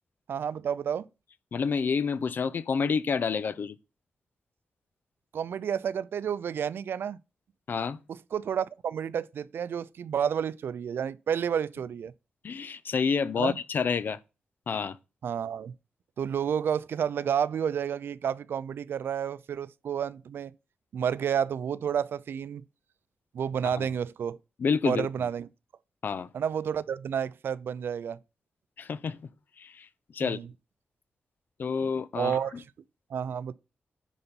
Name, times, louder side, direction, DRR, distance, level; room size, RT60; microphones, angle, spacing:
voice 1, 0.3-1.1 5.3-7.2 8.1-12.1 13.4-13.5 15.2-15.7 16.2-20.5 20.9-22.6 23.3-24.4 24.8-25.5 26.3-28.2 30.2-30.5 31.8-31.9 32.2-32.6 33.1-33.5, right 8 dB, 75° right, 0.4 m, -30 dB
voice 2, 1.5-3.8 7.7-8.0 12.4-14.2 14.7-15.0 23.8-23.9 24.6-25.1 26.0-26.3 28.8-29.3 29.6-29.9 30.1-30.4 31.6-32.4, left 5 dB, 60° left, 0.6 m, -28 dB
10.0 x 4.1 x 5.3 m
wide cardioid pair, 110°, 4 cm